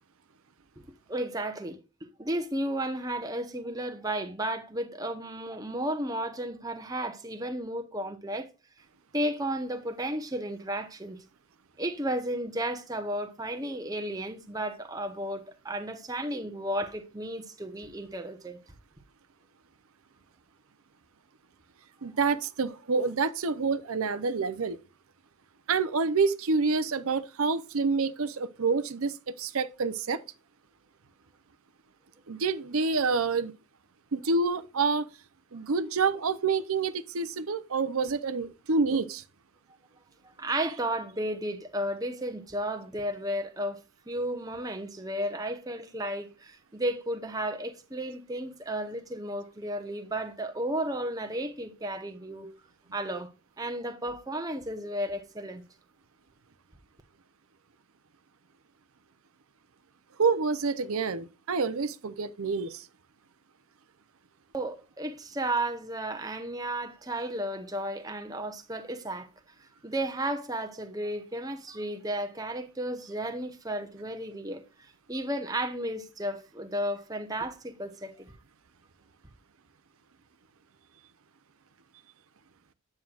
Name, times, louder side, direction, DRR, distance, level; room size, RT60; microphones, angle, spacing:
voice 1, 1.1-8.5 9.1-11.2 11.8-18.6 40.2-52.5 52.9-53.3 53.6-55.6 64.5-69.3 69.8-74.6 75.1-78.3, right 1 dB, 15° right, 0.9 m, -33 dB
voice 2, 22.0-24.8 25.7-30.2 32.3-33.5 34.1-35.1 35.5-39.2 60.2-62.9, right 4 dB, 75° right, 0.6 m, -28 dB
9.4 x 7.4 x 2.4 m
head